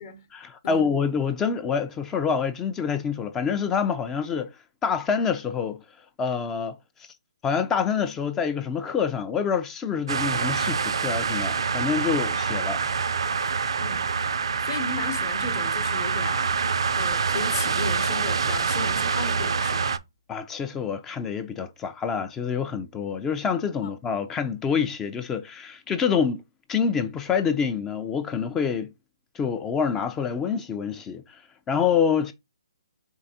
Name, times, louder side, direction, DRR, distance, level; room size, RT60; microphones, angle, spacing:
voice 1, 0.3-4.5 4.8-5.8 6.2-6.8 7.4-12.8 20.3-26.4 26.7-28.9 29.3-31.4 31.7-32.3, left 6 dB, 15° left, 0.3 m, -26 dB
sound 1, 10.1-20.0, right 5 dB, 70° right, 0.4 m, -26 dB
voice 2, 14.6-16.6 16.9-20.0 23.8-23.9, left 4 dB, 45° left, 0.9 m, -35 dB
4.5 x 3.4 x 2.7 m
hypercardioid pair, 150°, 3 cm